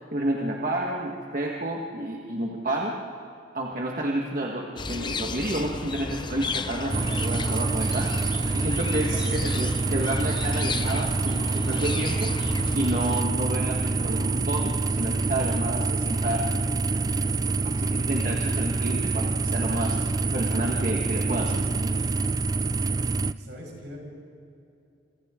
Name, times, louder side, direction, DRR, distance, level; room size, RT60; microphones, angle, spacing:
voice 1, 0.1-3.0 3.5-12.3 12.7-16.4 16.9-20.0 20.3-21.9, right 1 dB, 45° right, -1 dB, 1.6 m, -30 dB
sound 1, 4.8-13.2, left 3 dB, 25° left, 0.6 m, -34 dB
sound 2, 6.9-23.3, right 3 dB, 20° right, 0.4 m, -26 dB
voice 2, 23.3-24.0, equal, 65° right, -1 dB, 6.1 m, -42 dB
27.5 x 25.0 x 3.8 m, 2.7 s
head